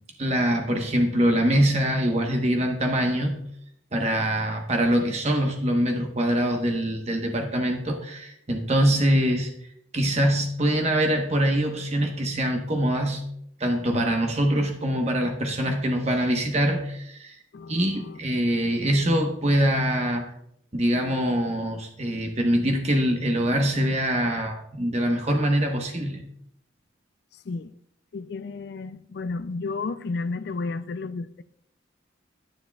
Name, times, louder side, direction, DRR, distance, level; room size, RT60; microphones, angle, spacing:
voice 1, 0.2-3.4 3.9-9.5 9.9-13.2 13.6-17.4 17.7-20.2 20.7-26.2, right 1 dB, 35° right, 1.0 m, -24 dB
voice 2, 17.5-18.2 27.5-27.7 28.1-31.4, left 3 dB, 55° left, 0.3 m, -32 dB
9.6 x 9.5 x 2.3 m
head